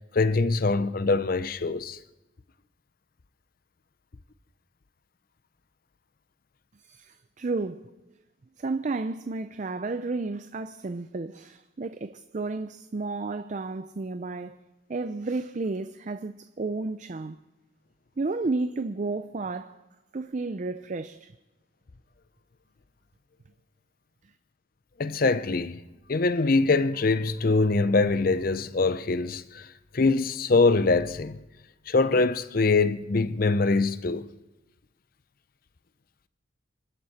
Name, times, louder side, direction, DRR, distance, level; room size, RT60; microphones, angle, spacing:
voice 1, 0.1-2.0 25.0-25.8 26.1-29.6 29.9-31.4 31.9-34.3, left 3 dB, 45° left, 0.6 m, -23 dB
voice 2, 6.8-7.8 8.6-14.6 14.9-17.4 18.2-19.8 20.1-21.3, right 3 dB, 40° right, 0.4 m, -32 dB
26.5 x 12.5 x 4.2 m
head